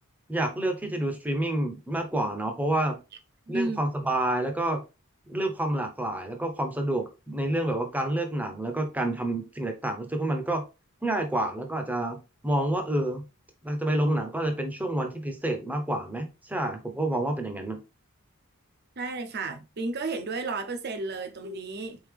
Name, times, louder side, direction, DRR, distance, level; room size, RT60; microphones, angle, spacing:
voice 1, 0.3-3.0 3.5-4.8 5.3-10.6 11.0-12.2 12.4-13.3 13.6-17.8, right 1 dB, 5° right, 0.7 m, -28 dB
voice 2, 3.5-3.8 19.0-22.0, right 3 dB, 50° right, 0.7 m, -32 dB
3.9 x 3.6 x 3.3 m
head